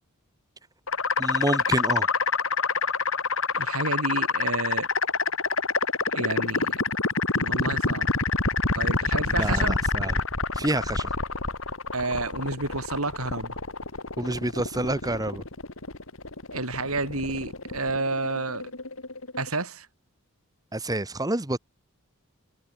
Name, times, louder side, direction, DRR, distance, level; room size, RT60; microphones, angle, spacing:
sound 1, 0.9-19.6, left 4 dB, 65° left, 4.8 m, -27 dB
voice 1, 1.2-2.1 9.3-10.2 10.5-11.1 14.2-15.4 20.7-21.6, right 1 dB, 15° right, 1.4 m, -28 dB
voice 2, 3.5-4.9 6.1-6.7 7.3-8.1 8.7-9.8 11.9-13.6 16.5-18.6 19.4-19.9, right 3 dB, 85° right, 6.6 m, -30 dB
head